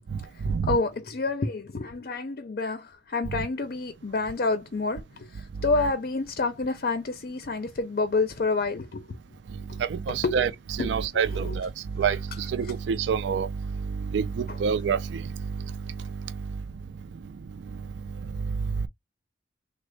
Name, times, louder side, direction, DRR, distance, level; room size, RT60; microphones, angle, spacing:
voice 1, 0.3-9.2 9.7-9.8 10.2-10.4 10.8-11.6 12.6-12.7 14.5-14.6, left 3 dB, 55° left, 0.5 m, -29 dB
voice 2, 9.8-10.5 10.8-11.7 12.0-13.5 14.1-15.2, right 6 dB, 80° right, 0.4 m, -26 dB
3.5 x 2.0 x 3.1 m
head